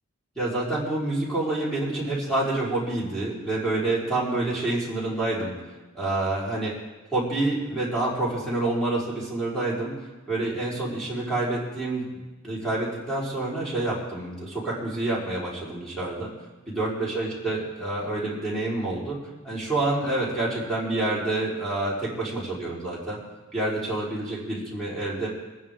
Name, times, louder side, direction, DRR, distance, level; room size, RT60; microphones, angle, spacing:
voice 1, 0.4-5.6 5.9-6.7 7.1-10.0 10.3-12.1 12.4-16.3 16.7-19.2 19.4-23.2 23.5-25.3, right 2 dB, ahead, -7 dB, 4.2 m, -27 dB
23.5 x 10.0 x 3.7 m, 1.2 s
head